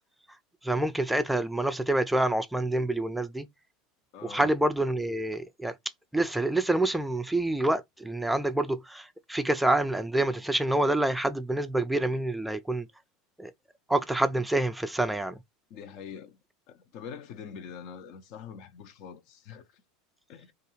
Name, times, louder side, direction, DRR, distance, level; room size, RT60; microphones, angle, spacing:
voice 1, 0.6-3.5 4.3-5.7 6.1-12.9 13.4-13.5 13.9-15.4, right 1 dB, 5° right, 0.3 m, -27 dB
voice 2, 4.1-4.5 15.7-16.4 16.7-19.8 20.3-20.5, left 7 dB, 60° left, 0.5 m, -44 dB
2.6 x 2.4 x 2.9 m
supercardioid pair, 110°, 0 cm